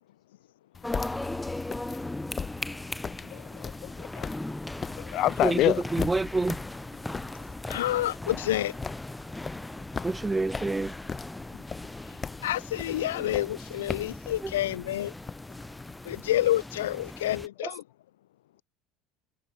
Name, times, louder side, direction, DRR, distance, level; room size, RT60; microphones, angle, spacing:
sound 1, 0.7-16.2, left 5 dB, 30° left, 3.5 m, -40 dB
sound 2, 0.8-17.5, left 2 dB, 10° left, 1.1 m, -39 dB
voice 1, 3.2-4.3 5.0-5.8, left 15 dB, 55° left, 0.9 m, -28 dB
voice 2, 5.9-6.6 10.0-10.9, right 3 dB, 15° right, 0.5 m, -27 dB
voice 3, 7.7-8.8 12.4-15.1 16.0-17.8, left 14 dB, 80° left, 0.4 m, -28 dB
hypercardioid pair, 75°, 0 cm